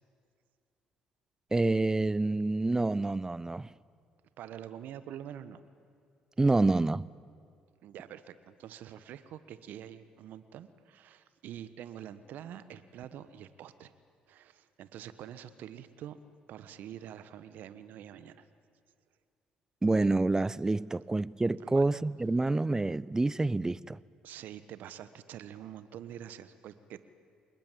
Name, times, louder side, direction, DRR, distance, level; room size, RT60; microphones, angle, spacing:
voice 1, 1.5-3.7 6.4-7.1 19.8-24.0, right 2 dB, 20° right, 0.7 m, -27 dB
voice 2, 4.4-5.6 7.8-13.9 14.3-16.2 16.5-18.5 21.6-21.8 24.2-27.1, right 10 dB, 65° right, 1.2 m, -46 dB
26.0 x 21.0 x 9.2 m
hypercardioid pair, 55°, 3 cm